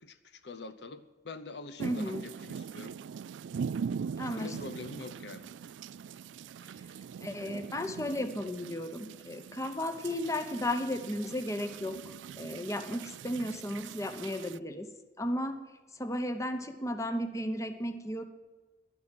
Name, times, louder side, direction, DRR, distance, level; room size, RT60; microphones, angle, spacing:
voice 1, 0.0-2.9 4.4-5.5 12.9-13.1, left 3 dB, 65° left, 12 dB, 0.7 m, -45 dB
voice 2, 1.8-2.3 4.2-4.6 6.6-6.7 7.2-14.9 15.2-15.6 15.9-18.2, left 1 dB, 15° left, 8 dB, 1.0 m, -34 dB
sound 1, 1.8-14.6, right 6 dB, 90° right, 0.3 m, -42 dB
12.0 x 11.0 x 7.5 m, 1.3 s
head